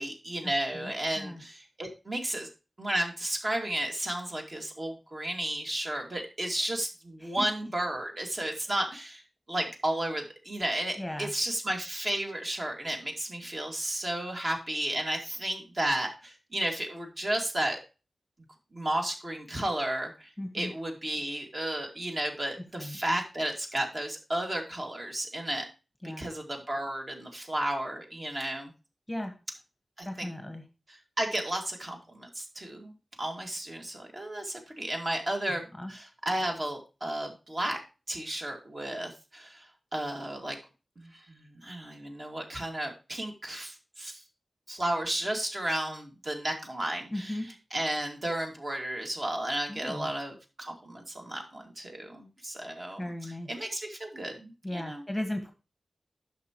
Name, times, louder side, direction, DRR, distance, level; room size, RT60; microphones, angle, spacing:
voice 1, 0.0-2.5 2.8-9.2 9.5-17.8 18.7-25.7 26.2-28.7 30.0-30.3 30.9-32.9 33.2-37.8 38.1-40.6 41.0-44.2 44.7-47.4 47.7-55.0, right 1 dB, 40° right, 2 dB, 2.2 m, -33 dB
voice 2, 0.7-1.4 7.2-7.4 8.6-8.7 11.0-11.3 20.4-20.7 22.8-23.0 26.0-26.2 29.1-29.4 30.0-30.6 35.8-35.9 47.1-47.5 49.7-50.1 53.0-53.5 54.6-55.5, left 1 dB, 5° left, 7 dB, 1.2 m, -36 dB
10.5 x 6.3 x 3.0 m, 0.31 s
wide cardioid pair, 95°, 0 cm